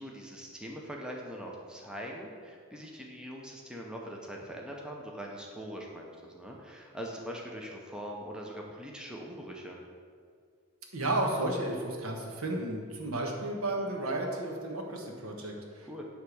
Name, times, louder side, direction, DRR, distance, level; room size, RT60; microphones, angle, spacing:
voice 1, 0.0-9.8 15.8-16.0, equal, 5° right, -1 dB, 0.7 m, -42 dB
voice 2, 10.9-15.9, right 1 dB, 75° right, 1 dB, 1.2 m, -33 dB
9.7 x 3.5 x 6.3 m, 2.1 s
head